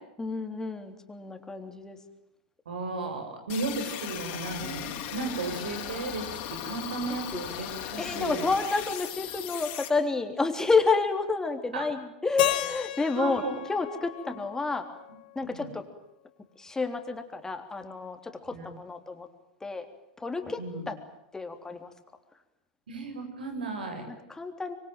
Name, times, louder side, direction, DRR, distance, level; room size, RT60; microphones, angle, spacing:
voice 1, 0.2-2.0 7.3-7.4 8.0-13.4 13.7-14.9 15.4-15.9 16.6-19.3 19.6-19.9 20.2-20.6 20.9-21.0 21.3-21.9 24.1-24.8, left 4 dB, 10° left, 6 dB, 3.5 m, -29 dB
voice 2, 2.7-8.4 11.7-11.8 13.2-13.5 15.4-15.7 18.5-18.7 20.6-20.8 22.9-24.1, right 3 dB, 85° right, 6 dB, 7.3 m, -35 dB
sound 1, 3.5-9.9, left 11 dB, 50° left, 4.6 m, -37 dB
Keyboard (musical), 12.4-15.4, left 15 dB, 70° left, 1.7 m, -33 dB
25.5 x 24.5 x 9.1 m, 0.82 s
hypercardioid pair, 100°, 5 cm